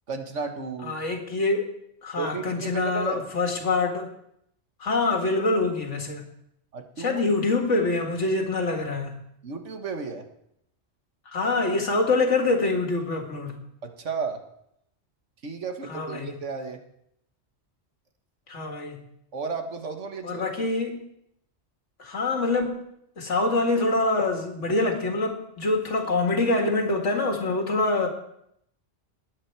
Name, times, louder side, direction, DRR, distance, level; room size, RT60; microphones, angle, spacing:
voice 1, 0.1-1.0 2.2-3.2 6.7-7.2 9.4-10.3 13.8-14.4 15.4-16.8 19.3-20.7, right 5 dB, 85° right, 5 dB, 1.8 m, -33 dB
voice 2, 0.8-1.7 2.0-4.1 4.8-6.3 7.0-9.2 11.3-13.6 15.9-16.3 18.5-19.0 20.2-21.0 22.0-22.8 23.2-28.1, left 3 dB, 90° left, 3 dB, 2.2 m, -25 dB
19.5 x 8.5 x 4.6 m, 0.75 s
omnidirectional pair, 1.2 m